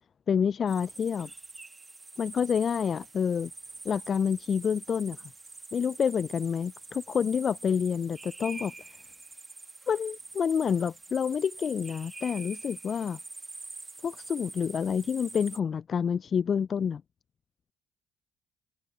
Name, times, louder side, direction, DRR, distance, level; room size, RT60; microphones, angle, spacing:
voice 1, 0.3-1.3 2.2-3.5 3.8-5.2 5.7-8.7 9.9-13.2 14.0-17.0, left 7 dB, 50° left, 0.4 m, -28 dB
sound 1, 0.7-15.6, right 3 dB, 25° right, 2.1 m, -45 dB
hypercardioid pair, 50°, 0 cm